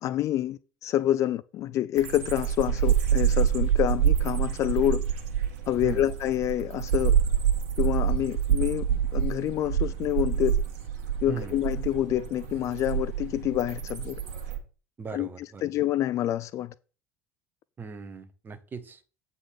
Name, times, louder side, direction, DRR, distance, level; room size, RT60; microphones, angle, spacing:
voice 1, 0.0-5.0 5.7-7.1 7.8-10.6 11.2-14.2 15.1-16.7, left 13 dB, 40° left, 0.4 m, -27 dB
sound 1, 2.0-14.6, right 9 dB, 60° right, 1.6 m, -27 dB
voice 2, 11.3-11.6 15.0-15.6 17.8-19.0, right 6 dB, 25° right, 1.1 m, -38 dB
8.0 x 4.1 x 6.2 m
figure-of-eight pair, 65°, 8 cm